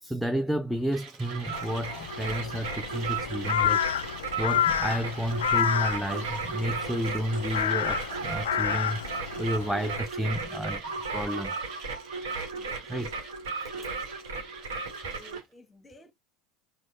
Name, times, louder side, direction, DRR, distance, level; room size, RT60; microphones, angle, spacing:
voice 1, 0.0-3.8 4.4-9.0 9.4-10.8 11.1-11.6 12.9-13.1 13.5-13.6, equal, ahead, 0.4 m, -31 dB
Mechanisms, 0.9-15.5, right 5 dB, 50° right, 1.1 m, -46 dB
sound 1, 1.3-15.4, right 4 dB, 75° right, 1.0 m, -35 dB
Crow, 1.5-10.0, left 10 dB, 75° left, 0.3 m, -30 dB
voice 2, 15.1-16.1, equal, 15° left, 1.0 m, -53 dB
6.0 x 2.1 x 2.3 m
figure-of-eight pair, 75°, 0 cm